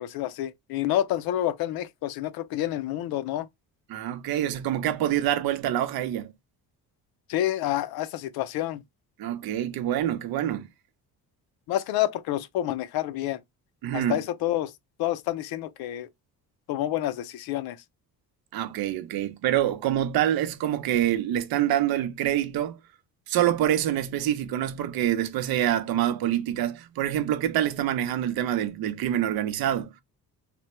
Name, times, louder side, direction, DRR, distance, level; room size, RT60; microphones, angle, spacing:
voice 1, 0.0-3.5 7.3-8.8 11.7-13.4 13.9-14.7 15.0-16.1 16.7-17.8, left 13 dB, 75° left, 0.5 m, -28 dB
voice 2, 3.9-6.3 9.2-10.7 13.8-14.2 18.5-22.8 23.3-29.9, right 11 dB, 75° right, 0.6 m, -26 dB
3.3 x 2.2 x 2.9 m
cardioid pair, 175°, 37 cm